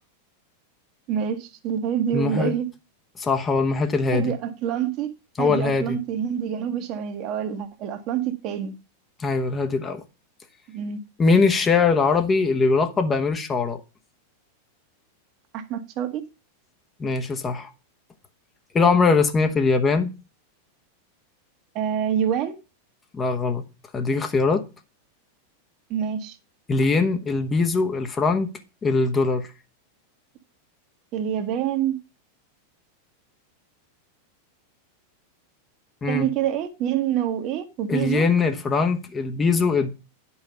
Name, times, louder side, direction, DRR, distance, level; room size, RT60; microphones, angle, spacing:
voice 1, 1.1-2.7 4.1-5.1 5.4-8.7 10.7-11.0 15.5-16.2 21.7-22.5 25.9-26.4 31.1-32.0 36.1-38.3, right 9 dB, 40° right, 1.3 m, -26 dB
voice 2, 2.1-2.5 3.2-4.3 5.4-6.0 9.2-10.0 11.2-13.8 17.0-17.7 18.7-20.1 23.1-23.6 23.9-24.7 26.7-28.5 28.8-29.5 36.0-36.3 37.9-39.9, left 4 dB, 20° left, 1.1 m, -21 dB
10.0 x 5.7 x 5.5 m
figure-of-eight pair, 90°, 0 cm